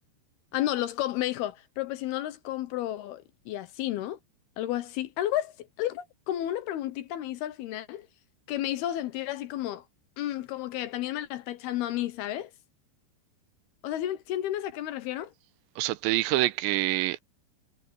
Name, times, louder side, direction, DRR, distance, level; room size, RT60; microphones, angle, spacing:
voice 1, 0.5-4.2 4.6-8.1 8.5-9.8 10.2-12.5 13.8-15.3, left 13 dB, 75° left, 2.6 m, -32 dB
voice 2, 15.8-17.2, right 17 dB, 85° right, 2.9 m, -26 dB
omnidirectional pair, 5.2 m